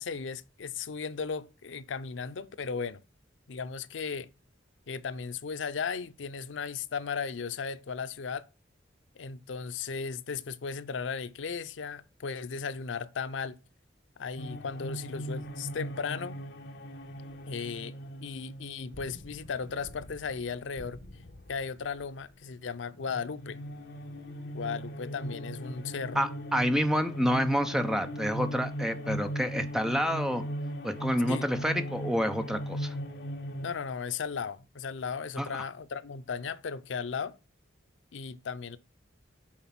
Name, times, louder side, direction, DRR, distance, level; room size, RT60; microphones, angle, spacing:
voice 1, 0.0-3.0 3.5-4.3 4.9-8.5 9.2-13.6 14.2-16.4 17.5-17.9 18.2-21.0 21.5-23.6 24.5-26.2 31.3-31.5 33.6-37.4 38.1-38.8, left 5 dB, 85° left, 0.6 m, -36 dB
sound 1, 14.4-22.5 22.8-33.7, equal, 65° left, 1.0 m, -39 dB
voice 2, 26.1-30.4 30.8-32.9 35.4-35.6, equal, 5° right, 0.6 m, -28 dB
7.3 x 4.5 x 5.8 m
head